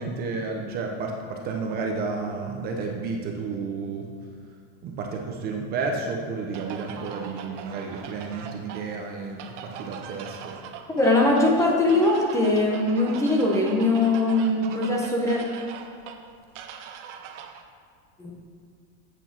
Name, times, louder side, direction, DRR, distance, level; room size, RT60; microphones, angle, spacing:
voice 1, 0.0-4.1 4.8-10.5, right 4 dB, 25° right, 1 dB, 0.7 m, -31 dB
sound 1, 6.5-17.6, right 7 dB, 70° right, 1.0 m, -41 dB
voice 2, 10.9-15.4 18.2-18.3, left 2 dB, 10° left, -2 dB, 0.7 m, -21 dB
8.1 x 6.8 x 5.9 m, 2.2 s
supercardioid pair, 170°, 38 cm